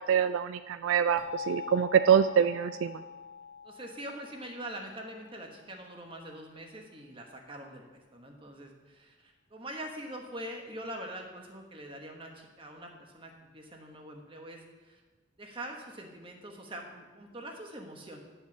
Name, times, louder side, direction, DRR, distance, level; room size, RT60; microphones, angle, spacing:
voice 1, 0.1-3.0, right 8 dB, 75° right, 11 dB, 0.3 m, -25 dB
sound 1, 1.2-5.9, left 6 dB, 25° left, 0.8 m, -44 dB
voice 2, 3.6-15.0 15.4-18.2, right 1 dB, 25° right, 2 dB, 1.2 m, -44 dB
10.5 x 5.7 x 6.0 m, 1.3 s
head